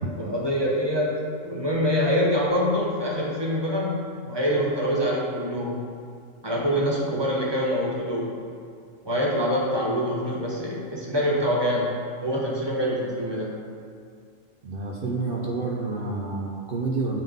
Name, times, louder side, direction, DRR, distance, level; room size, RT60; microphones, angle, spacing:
voice 1, 0.2-1.1 1.4-5.8 6.4-8.3 9.0-11.9 12.2-13.5, equal, 25° right, -4 dB, 0.8 m, -25 dB
voice 2, 14.6-17.2, right 3 dB, 60° right, -1 dB, 0.6 m, -29 dB
7.6 x 3.7 x 3.5 m, 2.2 s
omnidirectional pair, 1.4 m